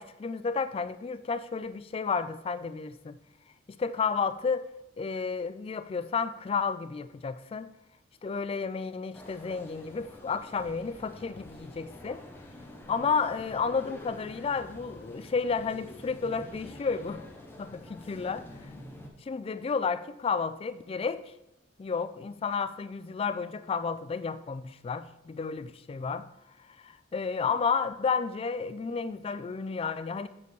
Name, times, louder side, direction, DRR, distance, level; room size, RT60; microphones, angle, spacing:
voice 1, 0.0-3.2 3.8-4.7 5.0-7.7 8.2-12.2 12.9-17.2 17.6-18.4 19.3-21.3 21.8-26.2 26.8-30.3, left 5 dB, 30° left, 0.3 m, -31 dB
sound 1, 9.1-19.1, left 1 dB, 10° left, 0.8 m, -47 dB
7.1 x 6.7 x 3.1 m
head